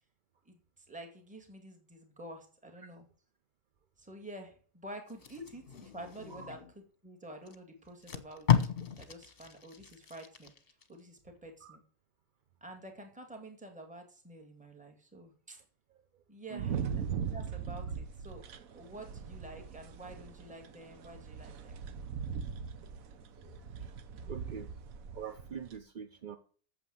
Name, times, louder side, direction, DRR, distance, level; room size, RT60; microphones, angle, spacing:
voice 1, 0.4-3.1 4.0-10.5 10.9-11.8 12.6-15.6 16.3-16.9 17.3-18.4 18.7-21.8 23.4-23.6, right 1 dB, 5° right, 3 dB, 1.9 m, -49 dB
Packing tape duct tape, 5.1-6.8 7.5-7.6 7.9-10.9 11.3-11.5, left 9 dB, 45° left, 1.2 m, -33 dB
voice 2, 16.5-16.8 24.3-24.7 25.1-26.4, right 7 dB, 45° right, 8 dB, 0.7 m, -44 dB
sound 1, 16.6-25.8, right 7 dB, 70° right, 1.2 m, -40 dB
8.8 x 7.1 x 7.8 m, 0.43 s
omnidirectional pair, 1.6 m